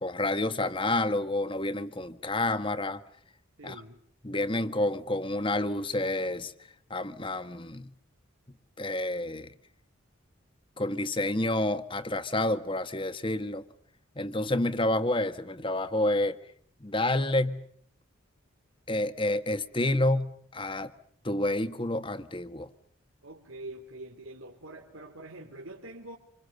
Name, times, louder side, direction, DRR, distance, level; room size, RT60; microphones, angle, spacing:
voice 1, 0.0-3.0 3.6-3.7 4.2-6.5 6.9-7.9 8.8-9.5 10.8-13.6 14.2-16.4 16.8-17.6 18.9-20.9 21.2-22.7, left 1 dB, 25° left, 11 dB, 1.5 m, -29 dB
voice 2, 3.6-4.0 23.2-26.2, right 2 dB, 90° right, 1 dB, 3.1 m, -44 dB
27.5 x 27.0 x 6.7 m, 0.64 s
head